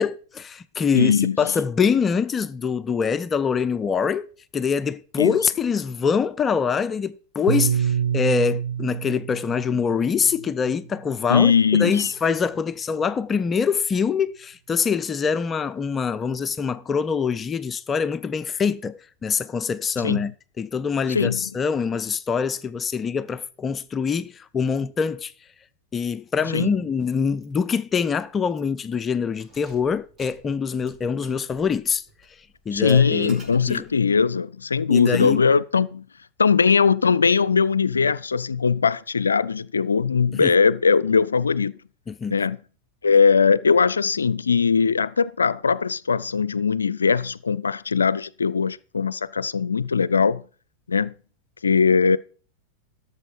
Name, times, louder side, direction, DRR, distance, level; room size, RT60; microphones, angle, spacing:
voice 1, 0.0-4.2 4.5-11.5 11.8-25.3 25.9-32.0 32.7-33.4 33.7-33.9 34.9-35.4 40.3-40.5 42.1-42.4, left 6 dB, 25° left, 0.6 m, -24 dB
voice 2, 0.9-1.4 5.2-5.4 11.3-12.1 20.0-20.2 21.1-21.4 26.5-26.7 32.7-36.0 36.4-41.7 42.3-42.6 43.0-50.4 50.9-51.1 51.6-52.2, left 5 dB, 85° left, 0.4 m, -20 dB
Piano, 7.5-11.9, right 8 dB, 75° right, 0.5 m, -28 dB
Keys jangling, 27.4-27.6 27.9-28.0 28.5-28.9 29.3-34.0, right 2 dB, 25° right, 4.8 m, -51 dB
12.5 x 7.1 x 4.9 m
figure-of-eight pair, 90°, 0 cm